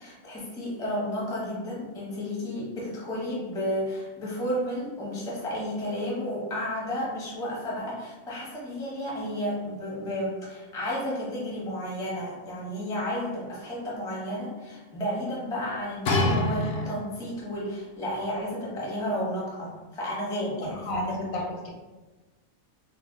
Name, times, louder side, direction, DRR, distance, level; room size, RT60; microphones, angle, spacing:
voice 1, 0.0-21.2, equal, 5° left, -6 dB, 0.4 m, -32 dB
sound 1, 16.0-17.3 18.1-18.2, left 2 dB, 65° left, 0.7 m, -26 dB
voice 2, 20.7-21.7, left 1 dB, 85° left, -1 dB, 1.1 m, -32 dB
2.7 x 2.1 x 3.6 m, 1.2 s
omnidirectional pair, 1.4 m